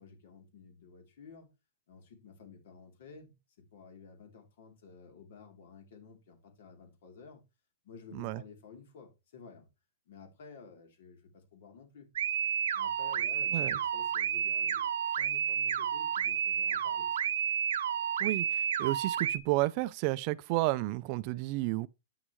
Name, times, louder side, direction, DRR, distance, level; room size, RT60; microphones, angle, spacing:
voice 1, 0.0-1.5 1.9-7.4 7.8-9.6 10.1-12.1 12.7-17.2, left 5 dB, 60° left, 3.2 m, -53 dB
sound 1, 12.2-19.4, right 8 dB, 80° right, 0.7 m, -31 dB
voice 2, 18.2-21.9, right 20 dB, 40° right, 0.4 m, -31 dB
9.3 x 6.2 x 3.1 m
hypercardioid pair, 155°, 0 cm